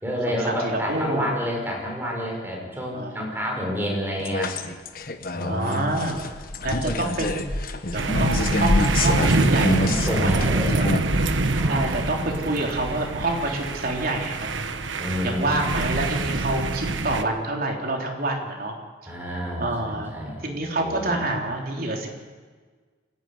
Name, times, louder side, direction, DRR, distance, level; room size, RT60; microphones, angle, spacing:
voice 1, 0.0-4.6 5.3-6.2 6.9-7.4 9.8-10.7 11.5-11.9 15.0-15.9 19.1-20.4 20.8-21.2, equal, 10° right, -1 dB, 6.2 m, -29 dB
voice 2, 0.6-1.3 2.9-3.1 5.5-6.1 6.6-7.5 7.9-11.0 11.7-18.7 19.6-20.1 20.4-22.1, right 2 dB, 50° right, 1 dB, 3.7 m, -27 dB
sound 1, 4.2-11.0, left 1 dB, 50° left, 1.4 m, -26 dB
sound 2, 7.9-17.2, right 2 dB, 75° right, 1.3 m, -25 dB
25.0 x 15.0 x 9.8 m, 1.5 s
head